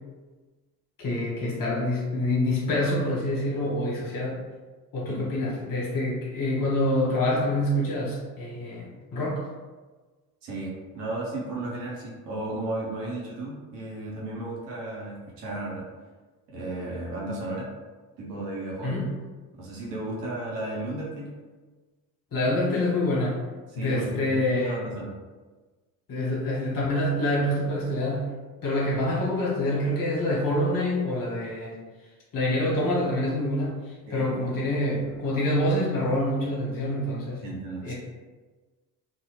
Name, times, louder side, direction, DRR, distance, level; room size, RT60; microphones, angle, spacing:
voice 1, 1.0-4.4 4.9-9.5 18.8-19.1 22.3-23.4 23.7-24.8 26.1-28.4 28.6-31.8 32.3-33.8 34.1-37.4 37.8-37.9, left 1 dB, 45° left, -5 dB, 1.1 m, -26 dB
voice 2, 10.4-15.8 16.5-17.7 18.2-19.0 19.5-21.4 23.7-25.1 34.1-34.6 37.4-37.9, right 2 dB, 90° right, -4 dB, 0.7 m, -34 dB
2.1 x 2.0 x 2.9 m, 1.3 s
hypercardioid pair, 55°, 47 cm